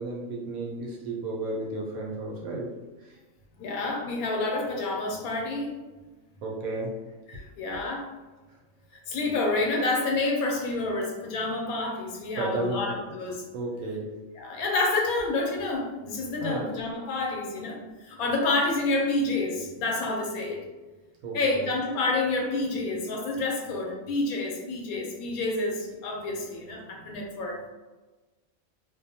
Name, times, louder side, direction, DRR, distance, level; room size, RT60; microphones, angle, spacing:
voice 1, 0.0-2.7 6.4-6.9 12.4-13.0 13.5-14.1 16.4-16.6 21.2-21.7, right 2 dB, 80° right, -2 dB, 1.0 m, -33 dB
voice 2, 3.6-5.7 7.3-8.1 9.1-13.4 14.3-20.6 21.3-27.6, left 2 dB, 85° left, 0 dB, 1.1 m, -28 dB
2.5 x 2.1 x 2.7 m, 1.2 s
omnidirectional pair, 1.5 m